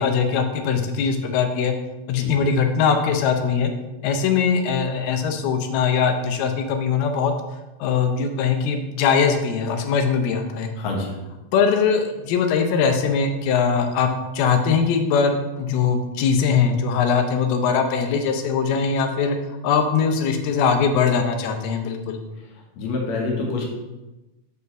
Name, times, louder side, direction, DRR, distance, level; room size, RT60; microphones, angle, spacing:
voice 1, 0.0-1.7 2.1-3.7 4.0-7.3 7.8-10.7 11.5-14.1 14.3-19.4 19.6-22.2, left 6 dB, 90° left, 5 dB, 2.7 m, -21 dB
voice 2, 10.8-11.2 22.8-23.6, left 3 dB, 60° left, -1 dB, 2.3 m, -26 dB
7.3 x 4.1 x 6.6 m, 1.0 s
omnidirectional pair, 4.3 m